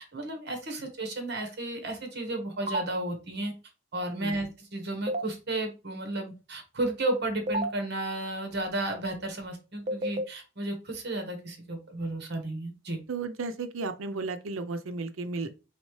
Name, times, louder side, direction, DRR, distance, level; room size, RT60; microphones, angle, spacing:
voice 1, 0.1-3.5 3.9-13.0, right 2 dB, 55° right, 1.3 m, -33 dB
sound 1, 2.7-2.8 5.1-5.2 7.5-7.7 9.9-10.2, right 1 dB, 35° right, 0.4 m, -29 dB
voice 2, 13.1-15.6, right 3 dB, 85° right, 0.6 m, -34 dB
4.2 x 3.6 x 3.1 m
head